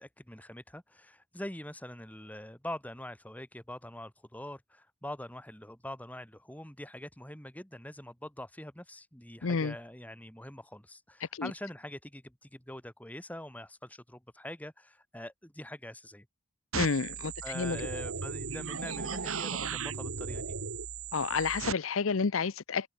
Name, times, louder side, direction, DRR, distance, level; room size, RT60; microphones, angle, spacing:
voice 1, 0.0-16.3 17.4-20.6, left 1 dB, 5° left, 2.2 m, -44 dB
voice 2, 9.4-9.7 11.3-11.5 16.7-17.8 21.1-22.9, left 5 dB, 70° left, 0.7 m, -30 dB
sound 1, 16.7-21.7, right 5 dB, 75° right, 1.9 m, -36 dB
head